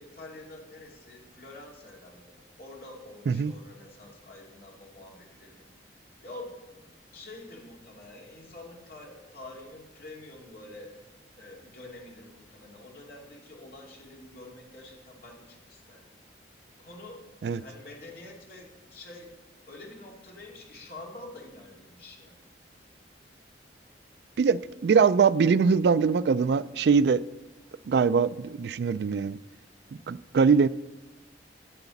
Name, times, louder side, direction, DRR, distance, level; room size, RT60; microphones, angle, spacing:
voice 1, 0.0-5.7 6.2-6.9 7.1-10.9 11.4-16.1 16.8-19.3 19.7-22.4, left 2 dB, 55° left, 2.5 m, -47 dB
voice 2, 24.4-27.2 27.9-29.4 30.1-30.7, right 5 dB, 65° right, 0.3 m, -22 dB
9.9 x 7.8 x 7.1 m
head